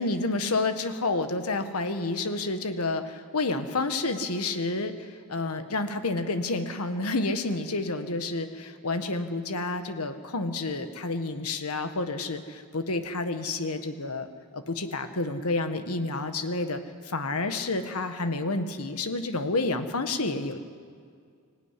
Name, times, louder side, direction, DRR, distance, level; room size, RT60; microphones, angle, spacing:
voice 1, 0.0-14.3 14.5-20.6, left 2 dB, 85° left, 8 dB, 1.6 m, -29 dB
25.0 x 16.0 x 9.9 m, 2.2 s
head